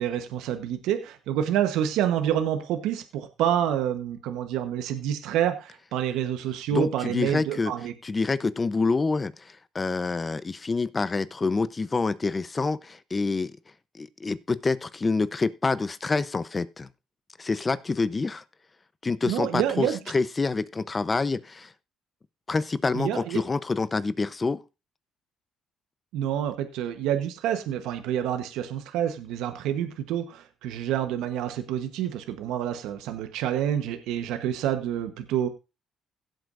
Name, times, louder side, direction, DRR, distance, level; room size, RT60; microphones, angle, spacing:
voice 1, 0.0-7.9 19.2-20.0 22.9-23.4 26.1-35.5, right 10 dB, 85° right, 1.2 m, -28 dB
voice 2, 6.7-7.7 8.0-13.5 13.9-16.9 17.4-18.4 19.0-21.7 22.5-24.6, left 3 dB, 30° left, 0.8 m, -27 dB
16.5 x 7.9 x 2.6 m
supercardioid pair, 70°, 0 cm